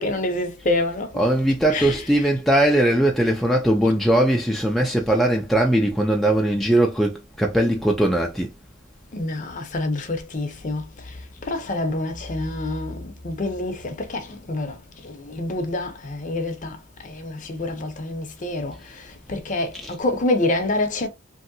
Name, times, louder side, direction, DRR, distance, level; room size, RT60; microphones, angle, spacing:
voice 1, 0.0-1.2 1.7-2.0 9.1-16.8 17.0-21.1, left 2 dB, 40° left, 0.6 m, -27 dB
voice 2, 1.1-8.5 19.7-19.9, right 1 dB, ahead, 0.4 m, -20 dB
3.0 x 2.7 x 2.6 m
head